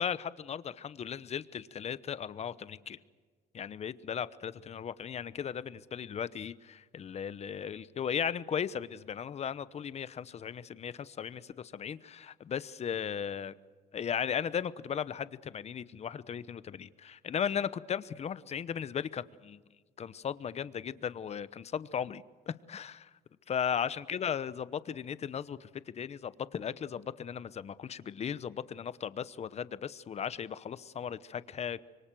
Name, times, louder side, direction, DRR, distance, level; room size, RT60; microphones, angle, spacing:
voice 1, 0.0-3.0 3.5-13.5 13.9-19.6 20.0-23.1 23.5-31.8, left 8 dB, 40° left, 16 dB, 0.9 m, -36 dB
26.0 x 23.5 x 7.6 m, 1.4 s
cardioid pair, 110°, 17 cm